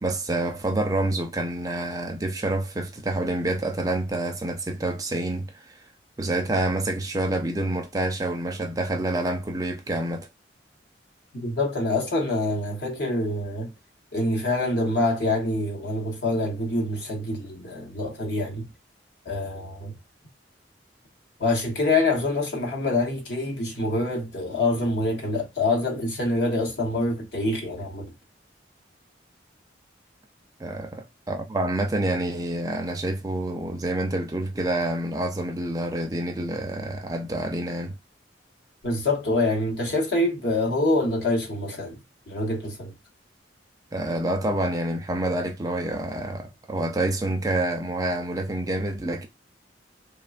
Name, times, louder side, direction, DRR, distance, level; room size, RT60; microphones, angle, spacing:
voice 1, 0.0-5.7 6.2-10.3 30.6-38.0 43.9-49.3, right 1 dB, 20° right, 0.4 m, -27 dB
voice 2, 11.3-13.7 14.1-18.7 19.2-19.9 21.4-28.1 38.8-42.0 42.3-42.9, left 2 dB, 60° left, 0.9 m, -26 dB
3.1 x 2.2 x 2.4 m
head